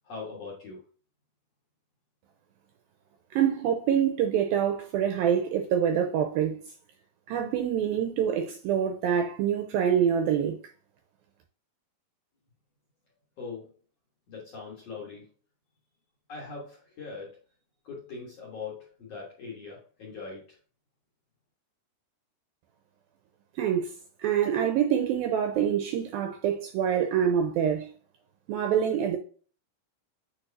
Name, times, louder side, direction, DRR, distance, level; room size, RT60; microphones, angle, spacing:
voice 1, 0.0-0.8 13.4-13.7 14.3-15.3 16.3-17.4 17.8-20.6, left 4 dB, 65° left, 1.7 m, -41 dB
voice 2, 3.3-6.6 7.3-10.6 23.6-23.9 24.2-27.9 28.5-29.2, right 9 dB, 85° right, 2.1 m, -26 dB
8.8 x 4.6 x 2.7 m
omnidirectional pair, 4.8 m